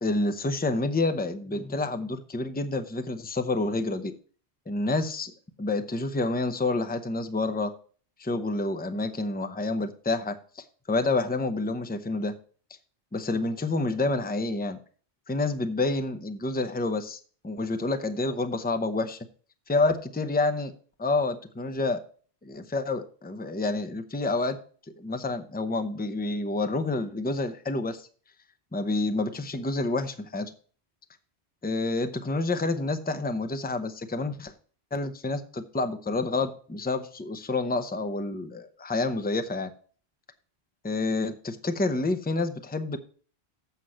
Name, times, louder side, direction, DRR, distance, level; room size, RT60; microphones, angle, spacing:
voice 1, 0.0-4.1 4.7-5.3 5.6-7.7 8.2-12.3 13.1-14.8 15.3-19.2 19.7-20.7 21.0-22.0 22.4-24.6 25.0-28.1 28.7-30.5 31.6-34.5 34.9-39.7 40.8-43.0, left 2 dB, 10° left, 8 dB, 0.6 m, -28 dB
8.2 x 5.8 x 6.2 m, 0.42 s
omnidirectional pair, 1.1 m